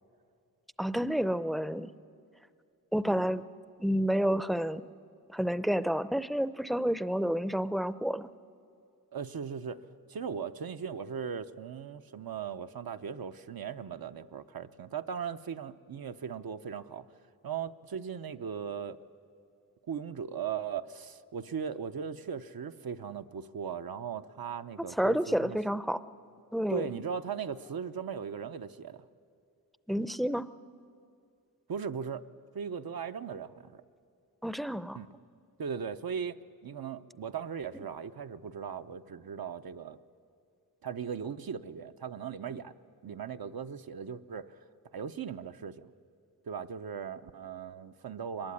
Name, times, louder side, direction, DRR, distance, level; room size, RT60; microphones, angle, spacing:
voice 1, 0.8-1.9 2.9-3.4 3.8-4.8 5.3-8.3 25.0-26.0 26.5-26.9 29.9-30.5 34.4-35.0, equal, ahead, 15 dB, 0.5 m, -29 dB
voice 2, 9.1-9.8 10.1-17.1 17.4-19.0 19.9-25.6 26.7-29.0 31.7-32.2 32.5-33.8 34.9-35.1 35.6-36.4 36.6-40.0 40.8-42.7 43.0-44.6 44.9-45.9 46.4-48.5, right 7 dB, 75° right, 8 dB, 0.8 m, -38 dB
23.5 x 20.5 x 9.8 m, 2.4 s
wide cardioid pair, 100°, 37 cm